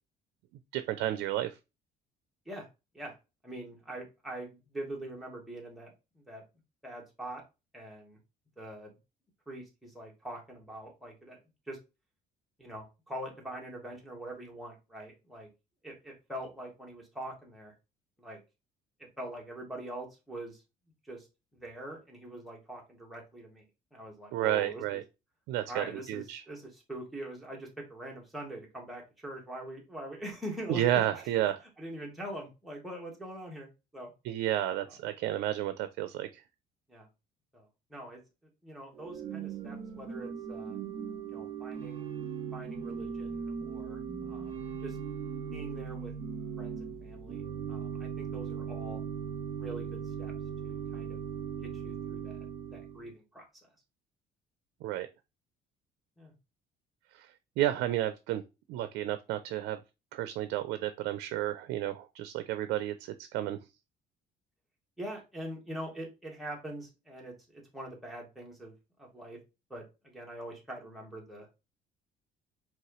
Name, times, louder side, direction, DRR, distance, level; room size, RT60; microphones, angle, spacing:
voice 1, 0.7-1.5 24.3-25.0 25.5-26.4 30.7-31.6 34.2-36.4 54.8-55.1 57.1-57.3 57.6-58.4 58.7-59.8 60.1-63.6, right 13 dB, 85° right, 0.4 m, -31 dB
voice 2, 3.4-6.4 6.8-7.4 7.7-8.2 8.6-9.0 9.5-11.4 11.7-11.8 12.6-15.5 15.8-17.7 18.2-18.4 19.0-20.6 21.0-21.3 21.5-23.6 23.9-25.0 25.7-31.4 31.8-34.1 34.9-35.0 36.9-37.1 37.5-38.2 38.6-40.8 41.3-42.0 42.5-45.0 45.5-46.1 46.6-47.4 47.7-49.0 49.6-50.3 50.6-53.4 56.2-56.3 65.0-68.7 69.0-69.4 69.7-71.5, right 1 dB, ahead, 1.8 m, -43 dB
Organ / Church bell, 38.9-53.1, right 7 dB, 40° right, 1.7 m, -38 dB
4.7 x 3.0 x 3.0 m
cardioid pair, 110°, 17 cm